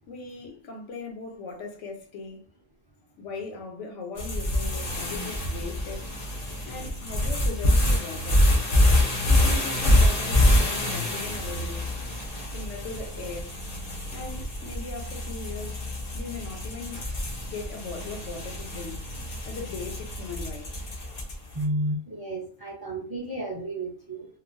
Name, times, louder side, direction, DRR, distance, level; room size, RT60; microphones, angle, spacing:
voice 1, 0.1-2.4 3.2-6.1 6.7-8.4 9.3-11.9 12.5-13.5 14.1-15.9 16.1-17.0 17.4-19.0 19.5-20.8, left 3 dB, 75° left, 1.0 m, -39 dB
sound 1, 4.2-21.5, left 1 dB, 45° left, 0.5 m, -26 dB
voice 2, 21.5-24.3, right 1 dB, 25° right, 0.5 m, -31 dB
2.9 x 2.0 x 2.5 m
omnidirectional pair, 1.3 m